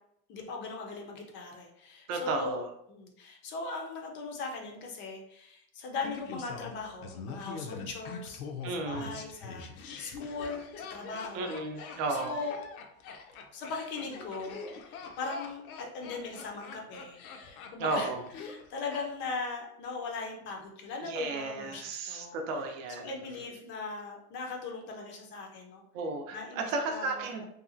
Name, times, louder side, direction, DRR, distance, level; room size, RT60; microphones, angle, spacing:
voice 1, 0.3-2.6 2.9-8.4 8.8-11.5 11.8-12.6 13.5-18.1 18.4-22.4 23.0-25.8 26.3-27.4, left 3 dB, 30° left, 2 dB, 0.4 m, -39 dB
voice 2, 2.1-2.7 8.6-9.2 11.3-12.4 17.8-18.3 21.0-23.1 25.9-27.4, right 3 dB, 65° right, 3 dB, 0.6 m, -33 dB
Laughter, 6.0-19.0 19.3-19.4, left 5 dB, 90° left, 0.6 m, -44 dB
2.7 x 2.3 x 2.5 m, 0.73 s
supercardioid pair, 130°, 43 cm